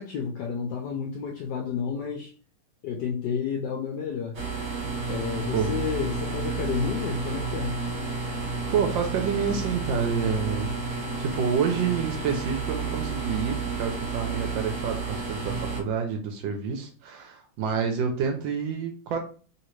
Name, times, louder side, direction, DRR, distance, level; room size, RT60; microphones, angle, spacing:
voice 1, 0.0-2.3 2.8-4.4 5.1-7.7, left 7 dB, 75° left, 0.9 m, -31 dB
sound 1, 4.3-15.8, right 4 dB, 55° right, 0.8 m, -31 dB
voice 2, 8.5-19.2, right 6 dB, 75° right, 1.2 m, -28 dB
3.3 x 2.8 x 3.0 m
omnidirectional pair, 2.3 m